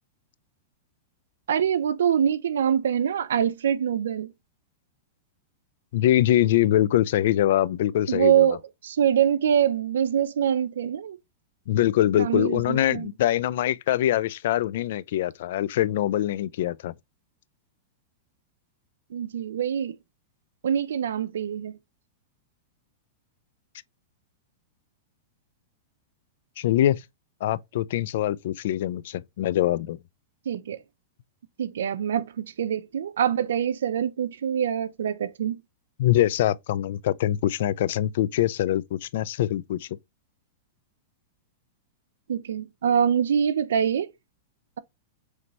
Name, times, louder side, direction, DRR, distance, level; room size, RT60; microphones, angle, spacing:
voice 1, 1.5-4.3 8.1-8.6 8.8-11.2 12.1-13.1 19.1-19.9 20.6-21.7 30.5-30.8 31.6-35.6 42.3-44.1, right 9 dB, 85° right, 0.5 m, -24 dB
voice 2, 5.9-8.6 11.7-16.9 26.6-27.0 27.4-30.0 36.0-39.9, left 12 dB, 70° left, 0.3 m, -23 dB
5.2 x 3.2 x 2.9 m
hypercardioid pair, 125°, 0 cm